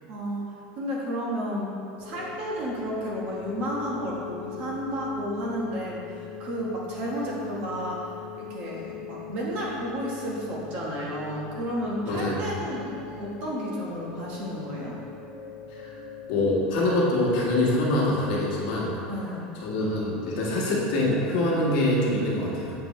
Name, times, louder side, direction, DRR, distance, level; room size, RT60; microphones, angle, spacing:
voice 1, 0.1-0.5 0.8-1.7 2.0-6.0 6.4-8.1 8.4-15.0 19.1-19.5, equal, 40° right, -4 dB, 1.2 m, -32 dB
sound 1, 2.0-18.3, left 8 dB, 40° left, 0.7 m, -41 dB
voice 2, 12.0-12.4 16.3-18.9 19.6-22.7, left 1 dB, 60° left, -5 dB, 1.4 m, -24 dB
7.6 x 5.2 x 3.1 m, 2.6 s
supercardioid pair, 175°, 4 cm